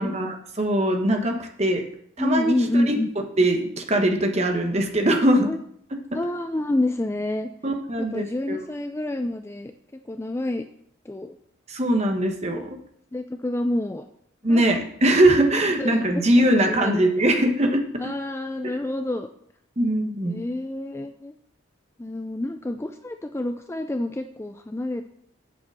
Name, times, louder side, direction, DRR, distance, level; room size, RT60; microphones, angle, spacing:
voice 1, 0.0-1.8 2.2-2.9 3.4-5.5 7.6-8.6 11.7-12.8 14.4-18.1 18.6-18.7 19.8-20.4, right 1 dB, 30° right, 4 dB, 1.2 m, -21 dB
voice 2, 2.2-3.1 5.4-5.6 6.1-7.5 8.0-9.7 10.1-10.6 11.1-11.4 13.1-14.1 14.5-14.6 15.8-17.1 18.0-19.3 20.2-21.3 22.0-25.0, left 1 dB, 15° left, 7 dB, 0.3 m, -28 dB
8.3 x 5.2 x 7.5 m, 0.67 s
head